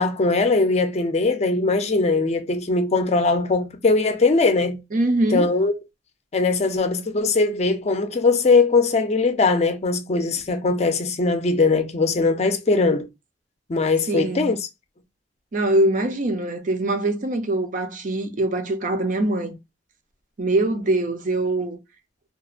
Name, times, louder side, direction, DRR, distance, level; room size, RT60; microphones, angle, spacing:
voice 1, 0.0-4.8 5.3-5.7 6.3-13.1 13.7-14.6, left 3 dB, 35° left, 0.5 m, -20 dB
voice 2, 4.9-5.5 14.1-14.5 15.5-19.6 20.4-21.8, right 2 dB, 45° right, 0.5 m, -23 dB
2.9 x 2.1 x 2.4 m
head